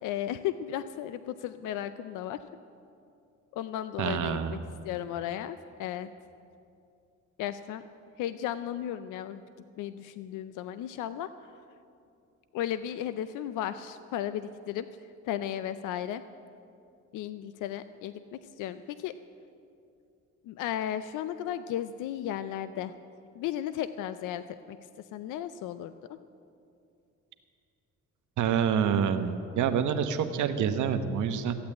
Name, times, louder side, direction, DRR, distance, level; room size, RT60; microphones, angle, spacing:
voice 1, 0.0-2.4 3.5-4.6 4.8-6.1 7.4-7.8 8.2-9.4 9.8-11.5 12.5-16.2 17.1-19.1 20.4-22.9 23.3-24.8 25.1-26.2, left 11 dB, 90° left, 12 dB, 0.5 m, -35 dB
voice 2, 4.0-4.5 28.4-31.6, right 7 dB, 75° right, 8 dB, 1.0 m, -27 dB
14.5 x 8.7 x 8.5 m, 2.5 s
cardioid pair, 90°, 30 cm